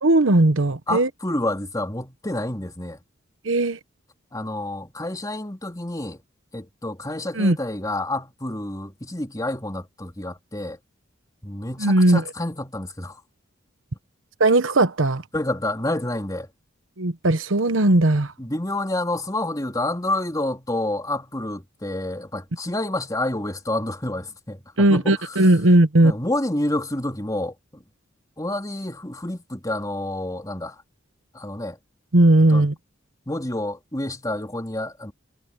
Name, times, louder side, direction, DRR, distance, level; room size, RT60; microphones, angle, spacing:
voice 1, 0.0-1.1 3.4-3.8 7.3-7.6 11.8-12.2 14.4-15.2 17.0-18.3 24.8-26.1 32.1-32.7, right 1 dB, 80° right, 1.2 m, -17 dB
voice 2, 0.9-3.0 4.3-6.2 6.5-10.8 11.4-13.2 15.3-16.5 18.4-25.4 26.0-27.8 28.4-30.8 31.3-31.8 32.5-32.6 33.3-35.1, left 1 dB, 20° left, 3.4 m, -29 dB
head